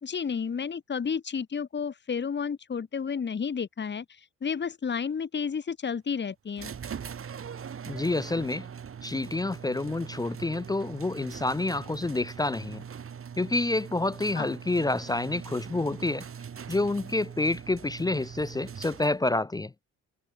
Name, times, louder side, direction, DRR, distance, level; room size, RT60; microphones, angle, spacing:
voice 1, 0.0-4.1 4.4-6.7 14.4-14.5, left 6 dB, 35° left, 2.1 m, -31 dB
sound 1, 6.6-19.4, right 7 dB, 45° right, 2.7 m, -42 dB
voice 2, 7.9-8.7 9.0-12.8 13.4-16.3 16.7-19.7, left 2 dB, 15° left, 0.5 m, -28 dB
cardioid pair, 90°, 30 cm